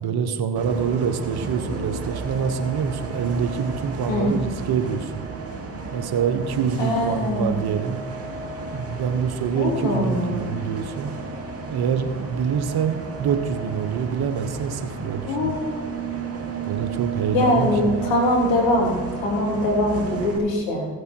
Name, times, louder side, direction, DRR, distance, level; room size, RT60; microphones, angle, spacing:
voice 1, 0.0-5.3 5.9-8.0 8.6-11.1 11.7-15.6 16.6-17.9, right 7 dB, 55° right, 9 dB, 1.2 m, -26 dB
Bus, 0.6-20.4, right 4 dB, 30° right, 2.7 m, -33 dB
voice 2, 6.8-7.6 9.5-10.4 15.2-15.8 17.3-20.9, left 1 dB, 70° left, -1 dB, 3.4 m, -22 dB
15.5 x 8.1 x 4.6 m, 1.5 s
hypercardioid pair, 60°, 46 cm